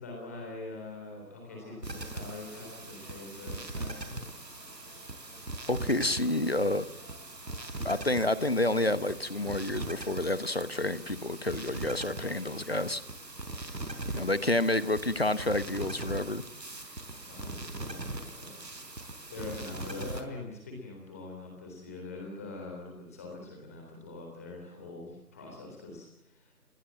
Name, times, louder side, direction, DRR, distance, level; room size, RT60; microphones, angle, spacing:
voice 1, 0.0-4.1 17.3-18.5 19.3-26.5, left 3 dB, 10° left, 1 dB, 3.7 m, -43 dB
sound 1, 0.9-10.5, right 2 dB, 15° right, 4.0 m, -58 dB
sound 2, 1.8-20.2, right 2 dB, 80° right, 4.8 m, -41 dB
voice 2, 5.7-6.8 7.8-13.0 14.1-16.4, left 1 dB, 40° left, 15 dB, 1.1 m, -29 dB
28.0 x 21.5 x 7.5 m, 0.82 s
figure-of-eight pair, 175°, 49 cm